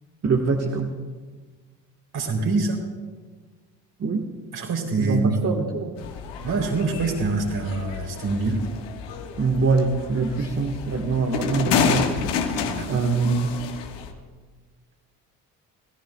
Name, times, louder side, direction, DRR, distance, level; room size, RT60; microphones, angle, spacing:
voice 1, 0.2-0.9 4.0-4.3 5.0-6.0 9.4-12.1 12.9-13.6, right 4 dB, 30° right, 1 dB, 1.4 m, -23 dB
voice 2, 2.1-2.8 4.5-5.4 6.4-8.6 12.7-12.9, right 3 dB, 50° right, 1 dB, 3.3 m, -25 dB
sound 1, 6.0-14.1, left 6 dB, 60° left, 1.5 m, -29 dB
26.0 x 17.0 x 2.3 m, 1.4 s
figure-of-eight pair, 50°, 48 cm